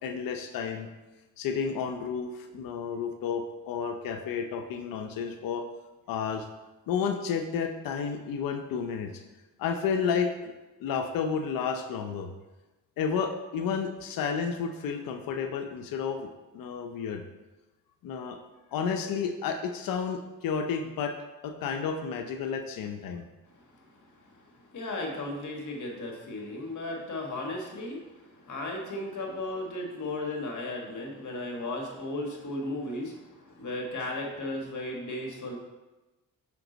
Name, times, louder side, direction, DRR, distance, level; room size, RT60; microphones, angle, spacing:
voice 1, 0.0-0.9 1.4-5.7 6.1-6.5 6.9-9.2 9.6-10.5 10.8-12.3 13.0-17.2 18.0-18.4 18.7-21.1 21.4-23.2, left 6 dB, 85° left, 6 dB, 0.6 m, -31 dB
voice 2, 24.7-28.1 28.4-35.6, left 2 dB, 60° left, 0 dB, 1.6 m, -35 dB
5.8 x 5.1 x 3.9 m, 1.1 s
supercardioid pair, 60°, 33 cm